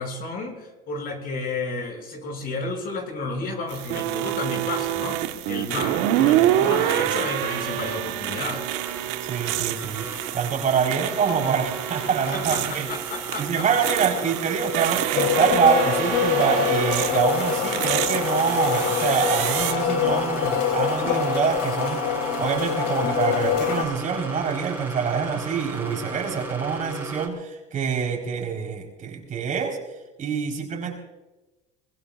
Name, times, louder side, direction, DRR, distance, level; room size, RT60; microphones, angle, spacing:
voice 1, 0.0-5.2 5.5-8.7 12.3-13.7, left 3 dB, 50° left, 2 dB, 6.6 m, -31 dB
sound 1, 3.7-19.7, right 13 dB, 75° right, 1.4 m, -27 dB
sound 2, 8.4-27.3, right 2 dB, 10° right, 5.4 m, -36 dB
voice 2, 9.2-12.9 13.4-22.0 22.4-29.8 30.2-31.0, right 6 dB, 40° right, 1 dB, 4.4 m, -25 dB
sound 3, 15.2-23.8, left 8 dB, 70° left, 3.2 m, -25 dB
23.5 x 21.0 x 2.5 m, 1.1 s
supercardioid pair, 100°, 20 cm